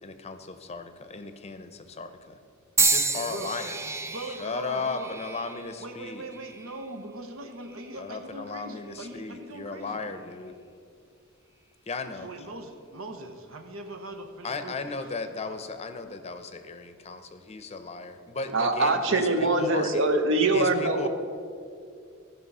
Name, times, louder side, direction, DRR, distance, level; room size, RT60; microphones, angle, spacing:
voice 1, 0.0-2.4 2.8-3.8 4.2-6.2 8.0-10.5 11.9-12.3 14.4-20.0 20.5-21.1, left 4 dB, 30° left, 9 dB, 0.6 m, -36 dB
sound 1, 2.8-6.9 7.6-8.0 9.0-9.2, right 4 dB, 15° right, 0.4 m, -30 dB
voice 2, 2.8-3.5 3.8-5.1 5.8-10.2 12.2-14.9, right 2 dB, 85° right, 5 dB, 1.0 m, -41 dB
voice 3, 18.5-21.1, right 2 dB, 65° right, 7 dB, 0.9 m, -23 dB
14.0 x 5.5 x 5.5 m, 2.4 s
head